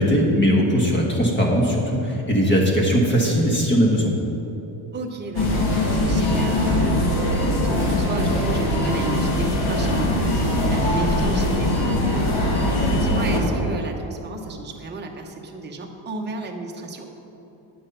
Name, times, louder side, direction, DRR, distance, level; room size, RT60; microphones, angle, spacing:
voice 1, 0.0-4.1, equal, 20° left, 0 dB, 1.5 m, -19 dB
voice 2, 4.9-17.1, right 3 dB, 20° right, 1 dB, 0.8 m, -34 dB
sound 1, 5.4-13.4, left 1 dB, 90° left, 2.1 m, -21 dB
10.0 x 6.3 x 5.6 m, 2.9 s
cardioid pair, 150°, 48 cm